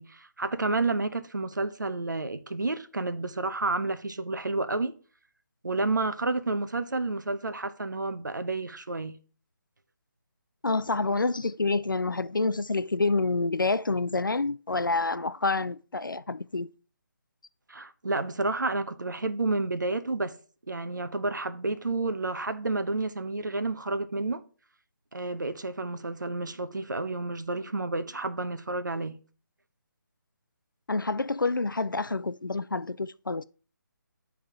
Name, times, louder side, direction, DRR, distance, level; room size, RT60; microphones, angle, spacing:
voice 1, 0.0-5.0 5.6-9.2 17.7-20.4 20.7-24.4 25.1-29.2, right 3 dB, 70° right, 0.7 m, -30 dB
voice 2, 10.6-16.7 30.9-33.4, left 3 dB, 90° left, 0.4 m, -28 dB
10.5 x 3.5 x 3.6 m
figure-of-eight pair, 150°, 11 cm